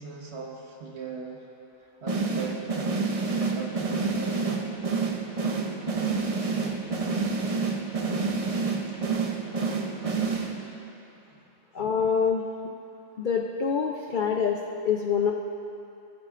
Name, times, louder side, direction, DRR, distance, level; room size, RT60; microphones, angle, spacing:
voice 1, 0.0-1.4 2.0-4.7 8.9-9.0 11.3-11.4, right 4 dB, 55° right, -1 dB, 1.5 m, -40 dB
sound 1, 2.1-10.9, right 4 dB, 35° right, 0.5 m, -28 dB
voice 2, 11.7-12.4 13.2-15.3, left 6 dB, 60° left, 1 dB, 0.5 m, -26 dB
19.0 x 8.8 x 2.5 m, 2.6 s
omnidirectional pair, 1.4 m